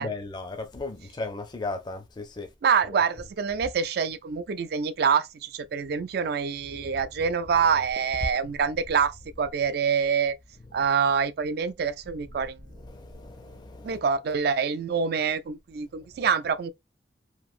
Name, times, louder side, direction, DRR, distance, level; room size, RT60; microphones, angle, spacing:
voice 1, 0.0-2.5 6.8-7.0 10.8-10.9 12.7-14.0, left 3 dB, 25° left, 0.4 m, -36 dB
voice 2, 2.6-10.4 10.7-12.6 13.8-16.7, right 6 dB, 55° right, 0.3 m, -26 dB
3.0 x 2.5 x 2.4 m
head